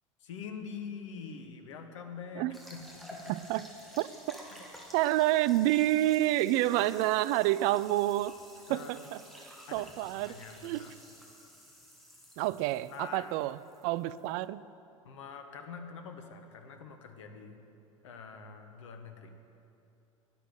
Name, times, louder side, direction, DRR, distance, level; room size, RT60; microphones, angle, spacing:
voice 1, 0.2-3.3 4.5-4.6 8.7-9.0 9.7-10.9 12.9-13.5 15.0-17.6 18.0-19.3, left 6 dB, 65° left, 6 dB, 1.3 m, -45 dB
sound 1, 2.5-14.4, equal, ahead, 2.6 m, -52 dB
voice 2, 3.3-3.7 4.0-4.4 4.9-8.4 8.7-9.2 9.7-10.4 10.6-10.9 12.4-14.6, right 15 dB, 45° right, 17 dB, 0.4 m, -28 dB
11.0 x 10.0 x 9.1 m, 2.8 s
figure-of-eight pair, 75°, 17 cm